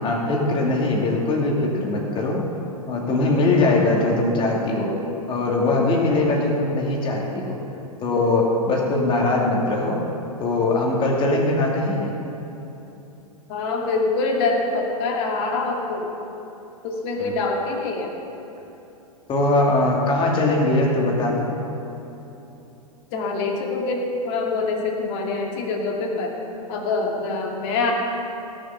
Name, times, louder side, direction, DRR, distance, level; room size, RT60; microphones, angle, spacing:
voice 1, 0.0-2.5 2.9-5.0 5.3-7.6 8.0-10.0 10.4-12.1 17.2-17.3 19.3-21.5, left 2 dB, 25° left, -1 dB, 2.5 m, -21 dB
voice 2, 13.5-16.1 16.8-18.1 23.1-26.3 26.7-27.9, left 3 dB, 45° left, 0 dB, 2.3 m, -25 dB
16.5 x 7.3 x 5.9 m, 3.0 s
figure-of-eight pair, 105°, 19 cm